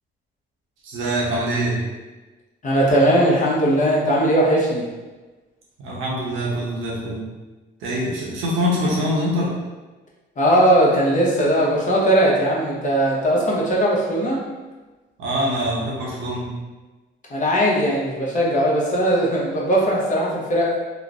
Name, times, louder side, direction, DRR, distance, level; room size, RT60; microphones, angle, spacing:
voice 1, 0.8-1.8 5.8-7.3 7.8-9.5 15.2-16.5, equal, 85° right, -5 dB, 0.8 m, -24 dB
voice 2, 2.6-4.8 10.4-14.4 17.3-20.8, right 1 dB, 40° left, -4 dB, 0.8 m, -19 dB
3.0 x 2.0 x 2.4 m, 1.2 s
cardioid pair, 90°, 20 cm